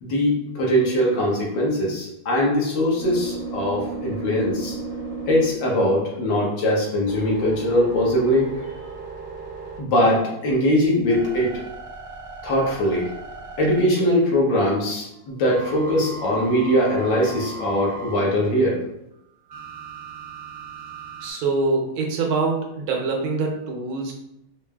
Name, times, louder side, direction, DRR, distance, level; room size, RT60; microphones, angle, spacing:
voice 1, 0.0-4.8 5.3-8.5 9.8-11.6 12.4-13.1 13.6-18.8, equal, 70° left, -3 dB, 1.6 m, -21 dB
sound 1, 2.9-6.2 6.7-10.2 10.7-14.4 15.5-18.2 19.5-21.3, right 4 dB, 50° right, 0.8 m, -36 dB
voice 2, 21.2-24.1, right 3 dB, 80° right, 1 dB, 1.5 m, -24 dB
4.8 x 2.6 x 2.3 m, 0.83 s
omnidirectional pair, 2.2 m